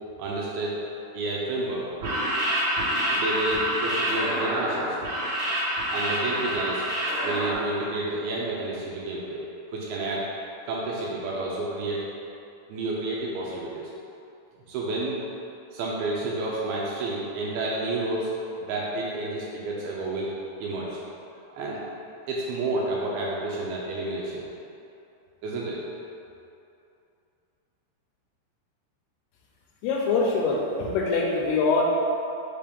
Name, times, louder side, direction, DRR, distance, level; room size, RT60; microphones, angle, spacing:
voice 1, 0.2-0.9 1.1-1.9 3.1-5.0 5.9-6.9 7.2-10.3 10.6-12.1 12.7-13.9 14.7-15.2 15.7-18.3 18.6-20.3 20.6-21.0 21.5-21.8 22.3-24.5 25.4-25.8, right 2 dB, 80° right, -4 dB, 2.4 m, -30 dB
sound 1, 1.9-7.5, equal, 55° right, 2.4 m, -27 dB
voice 2, 29.8-31.8, left 4 dB, 80° left, -2 dB, 2.5 m, -24 dB
6.8 x 3.1 x 5.1 m, 2.7 s
omnidirectional pair, 4.9 m